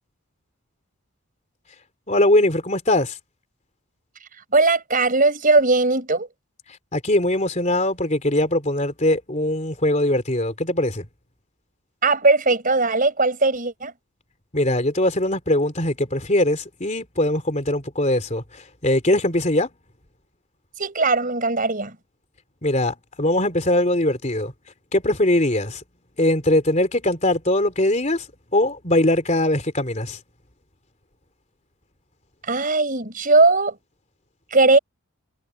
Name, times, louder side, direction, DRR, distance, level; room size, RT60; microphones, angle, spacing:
voice 1, 2.1-3.2 6.9-11.0 14.5-19.7 22.6-24.5 24.9-25.8 26.2-28.2 28.5-30.2, left 1 dB, 30° left, 3.4 m, -21 dB
voice 2, 4.5-6.3 12.0-13.9 20.8-22.0 32.4-33.8 34.5-34.8, right 3 dB, 40° right, 5.2 m, -19 dB
head